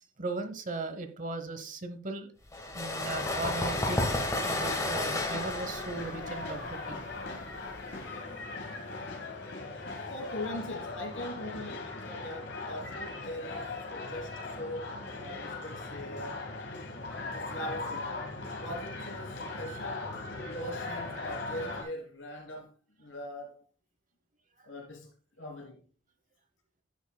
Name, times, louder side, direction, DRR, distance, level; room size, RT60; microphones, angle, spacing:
voice 1, 0.2-2.3 2.7-4.1 4.4-7.0, right 2 dB, 40° right, 9 dB, 1.0 m, -37 dB
sound 1, 2.5-8.0, left 2 dB, 15° left, 1.4 m, -32 dB
sound 2, 3.0-21.8, left 3 dB, 65° left, 2.5 m, -39 dB
voice 2, 10.1-16.4 17.3-18.1 18.6-20.1 20.5-22.7 23.0-23.6 24.6-25.8, left 1 dB, 85° left, 2 dB, 3.3 m, -41 dB
10.5 x 8.1 x 2.3 m, 0.35 s
head